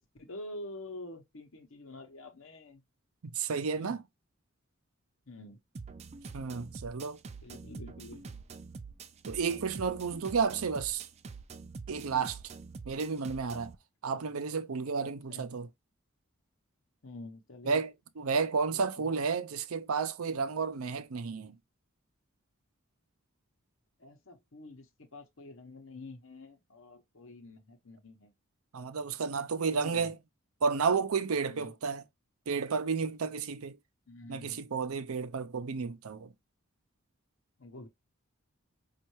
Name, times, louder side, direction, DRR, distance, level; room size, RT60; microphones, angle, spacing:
voice 1, 0.2-2.8 3.8-4.0 5.3-5.6 7.4-8.4 15.0-15.4 17.0-17.8 18.7-19.1 24.0-28.3 29.7-30.2 31.5-31.7 34.1-34.7 37.6-37.9, left 2 dB, 70° left, 0.9 m, -47 dB
voice 2, 3.2-4.0 6.3-7.2 9.3-11.1 11.9-12.4 12.9-13.7 14.0-15.7 17.7-17.9 18.2-21.6 28.7-30.1 30.6-32.0 32.5-33.8 34.3-36.3, right 5 dB, 90° right, 0.6 m, -32 dB
sound 1, 5.7-13.7, right 4 dB, 30° right, 0.4 m, -46 dB
5.4 x 2.5 x 3.0 m
head